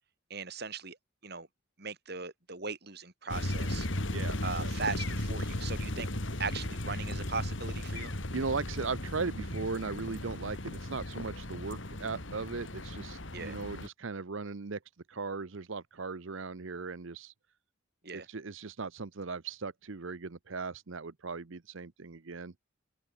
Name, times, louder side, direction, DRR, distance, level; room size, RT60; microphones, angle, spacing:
voice 1, 0.3-1.0 1.2-1.5 1.8-3.9 4.4-6.1 6.4-8.1 13.3-13.6 18.0-18.3, right 4 dB, 50° right, 3.5 m, -38 dB
sound 1, 3.3-13.9, left 1 dB, 60° left, 2.9 m, -36 dB
voice 2, 4.1-4.7 8.3-14.8 15.1-17.3 18.1-22.5, right 4 dB, 65° right, 0.8 m, -38 dB
open air
head